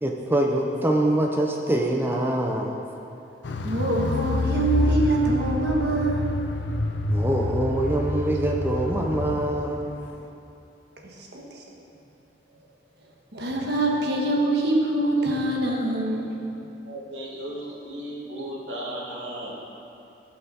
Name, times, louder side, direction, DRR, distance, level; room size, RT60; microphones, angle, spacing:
voice 1, 0.0-2.8 7.1-9.9, right 1 dB, 10° right, 0 dB, 0.6 m, -24 dB
Car, 3.4-9.6 9.9-10.0, left 2 dB, 75° left, 0.6 m, -27 dB
voice 2, 3.6-6.3 11.2-11.6 13.3-16.3, right 2 dB, 65° right, -1 dB, 1.4 m, -24 dB
voice 3, 16.8-19.5, right 1 dB, 85° right, -5 dB, 2.2 m, -35 dB
15.5 x 5.7 x 4.1 m, 2.8 s
head